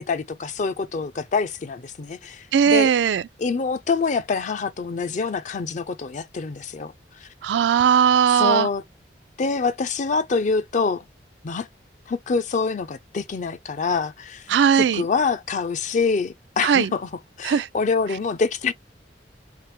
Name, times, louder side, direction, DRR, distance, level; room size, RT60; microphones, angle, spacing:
voice 1, 0.0-2.9 3.4-6.9 7.2-7.3 8.3-8.8 9.4-11.1 11.4-11.7 12.1-17.1 17.4-18.7, left 4 dB, 45° left, 0.4 m, -25 dB
voice 2, 2.5-3.2 7.4-8.7 14.5-15.0 16.6-16.9 17.4-17.7, right 7 dB, 80° right, 0.3 m, -18 dB
3.3 x 2.9 x 3.2 m
head